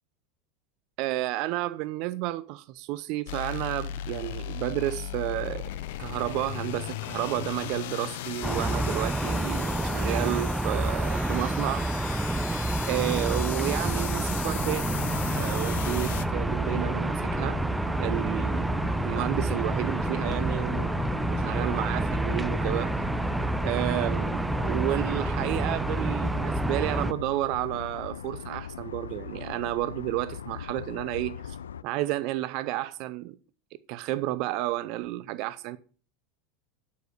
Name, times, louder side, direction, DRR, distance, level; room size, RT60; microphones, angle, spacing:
voice 1, 1.0-5.6 6.0-11.8 12.8-14.9 15.4-17.6 18.0-20.9 21.3-23.0 23.6-31.6 31.8-33.4 33.9-35.8, right 16 dB, 55° right, 0.6 m, -31 dB
sound 1, 3.3-16.3, left 12 dB, 65° left, 0.8 m, -37 dB
sound 2, 8.4-27.1, right 2 dB, 5° right, 0.4 m, -28 dB
sound 3, 14.5-31.8, left 8 dB, 85° left, 0.3 m, -40 dB
8.3 x 6.9 x 6.5 m
hypercardioid pair, 90°, 0 cm